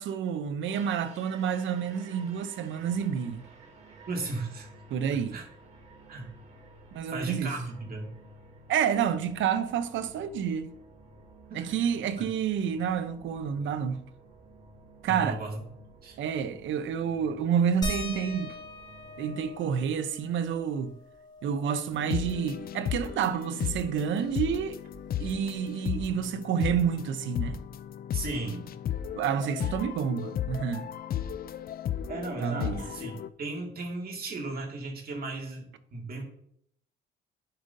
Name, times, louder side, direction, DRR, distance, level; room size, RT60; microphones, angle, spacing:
voice 1, 0.0-3.4 4.9-5.4 6.9-7.5 8.7-10.7 11.5-14.0 15.0-15.4 16.2-18.6 19.2-20.9 21.4-24.8 25.2-27.6 29.2-30.9 32.4-32.8, right 7 dB, 75° right, 0.7 m, -29 dB
sound 1, 0.6-19.6, right 3 dB, 35° right, 1.8 m, -52 dB
voice 2, 4.1-4.7 5.1-5.4 6.1-6.3 7.1-8.1 11.5-11.7 12.2-12.3 15.1-15.6 16.0-16.2 28.1-28.7 32.1-36.2, right 2 dB, 50° right, 2.0 m, -36 dB
sound 2, 17.8-22.9 23.3-23.4 23.7-25.5 26.7-26.8 27.6-27.7, equal, 20° left, 2.2 m, -41 dB
sound 3, 21.9-33.3, left 9 dB, 50° left, 0.4 m, -35 dB
10.0 x 5.3 x 2.7 m
cardioid pair, 90°, 20 cm